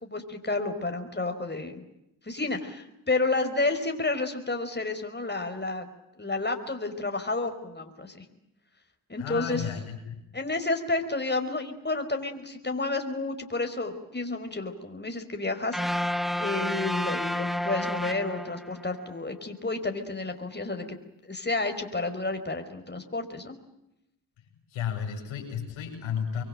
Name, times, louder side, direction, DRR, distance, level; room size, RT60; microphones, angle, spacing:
voice 1, 0.0-1.8 2.2-5.9 6.2-8.3 9.1-9.6 10.3-15.8 16.4-20.8 21.2-23.6, left 3 dB, 20° left, 6 dB, 5.1 m, -30 dB
voice 2, 9.2-10.2 24.7-26.4, left 7 dB, 85° left, 2 dB, 7.6 m, -33 dB
sound 1, 15.7-19.0, left 1 dB, ahead, 1.2 m, -30 dB
25.0 x 23.0 x 9.1 m, 0.85 s
supercardioid pair, 45°, 46 cm